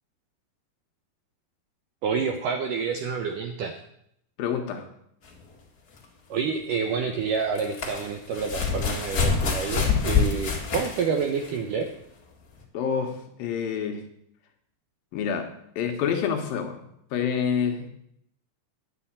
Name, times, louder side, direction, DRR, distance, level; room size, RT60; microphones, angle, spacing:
voice 1, 2.0-3.8 6.3-11.9, right 5 dB, 75° right, 5 dB, 1.9 m, -28 dB
voice 2, 4.4-4.9 12.7-14.0 15.1-17.9, left 7 dB, 70° left, 4 dB, 2.5 m, -28 dB
sound 1, 5.3-5.4 7.3-11.6 12.6-12.7, left 5 dB, 40° left, 1.4 m, -26 dB
10.0 x 7.0 x 8.6 m, 0.74 s
omnidirectional pair, 4.8 m